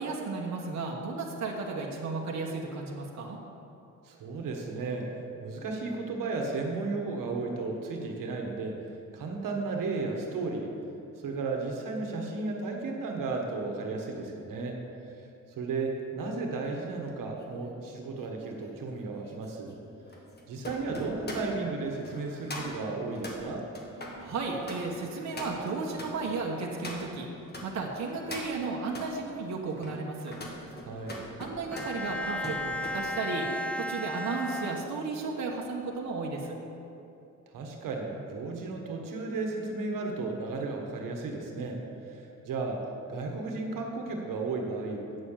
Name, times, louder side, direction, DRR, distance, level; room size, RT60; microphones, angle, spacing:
voice 1, 0.0-3.4 24.2-27.3 27.6-30.3 31.4-33.5 33.8-36.6, right 3 dB, 60° right, -1 dB, 1.2 m, -34 dB
voice 2, 4.0-5.1 5.4-8.8 9.1-10.7 11.2-14.8 15.6-19.8 20.5-23.6 30.8-31.2 37.5-41.8 42.1-42.8 43.1-45.0, right 3 dB, 90° right, 1 dB, 1.4 m, -34 dB
sound 1, 17.0-27.7 28.1-29.1 29.6-33.0 33.3-33.7, left 1 dB, 30° left, 1.5 m, -43 dB
Bowed string instrument, 31.7-35.4, left 1 dB, 5° left, 0.4 m, -35 dB
8.7 x 6.7 x 7.3 m, 2.7 s
cardioid pair, 125°, 32 cm